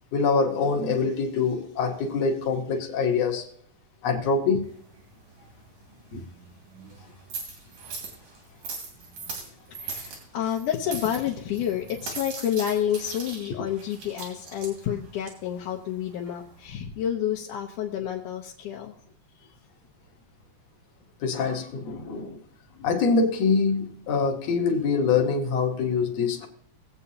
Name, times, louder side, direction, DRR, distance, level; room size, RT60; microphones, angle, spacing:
voice 1, 0.1-3.5 4.0-4.7 6.1-6.2 21.2-22.4 22.8-26.5, left 4 dB, 60° left, 2.2 m, -24 dB
sound 1, 4.6-16.7, right 4 dB, 80° right, 4.1 m, -41 dB
voice 2, 9.7-18.9, left 10 dB, 80° left, 2.5 m, -29 dB
21.0 x 8.0 x 2.8 m
omnidirectional pair, 3.6 m